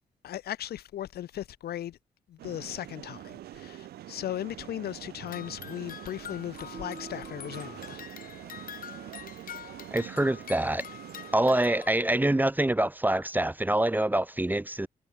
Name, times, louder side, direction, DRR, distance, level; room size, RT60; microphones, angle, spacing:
voice 1, 0.2-2.0 2.3-8.0, left 12 dB, 80° left, 1.3 m, -37 dB
sound 1, 2.4-11.7, right 13 dB, 80° right, 0.7 m, -45 dB
sound 2, 5.3-11.9, left 9 dB, 60° left, 1.0 m, -45 dB
sound 3, 6.7-8.9, right 4 dB, 40° right, 6.5 m, -49 dB
voice 2, 9.9-10.8 11.3-14.9, right 1 dB, 10° right, 0.9 m, -25 dB
cardioid pair, 70°, 16 cm